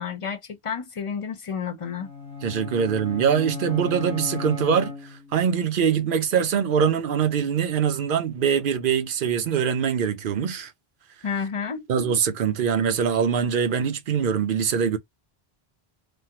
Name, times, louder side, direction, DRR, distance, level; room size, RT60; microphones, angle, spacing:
voice 1, 0.0-2.1 11.2-11.8, left 6 dB, 40° left, 0.6 m, -30 dB
sound 1, 2.0-5.5, left 5 dB, 5° left, 0.8 m, -35 dB
voice 2, 2.4-4.9 5.3-10.7 11.9-15.0, right 7 dB, 60° right, 0.8 m, -23 dB
3.5 x 2.0 x 2.9 m
omnidirectional pair, 1.0 m